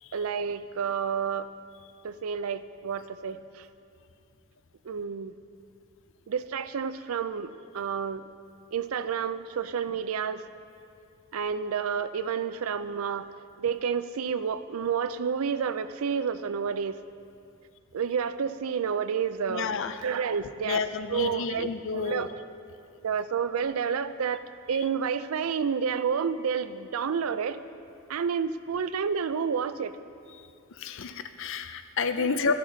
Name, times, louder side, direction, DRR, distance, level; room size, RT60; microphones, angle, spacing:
voice 1, 0.1-1.5 2.0-3.7 4.8-5.3 6.3-8.2 8.7-10.5 11.3-13.3 13.6-17.0 17.9-20.8 21.1-22.4 23.0-24.4 24.7-27.6 28.1-30.0 32.2-32.5, right 6 dB, 90° right, 13 dB, 0.4 m, -30 dB
voice 2, 19.5-20.0 20.6-22.3 30.8-32.5, left 5 dB, 65° left, 10 dB, 0.5 m, -30 dB
13.0 x 10.5 x 3.9 m, 2.5 s
head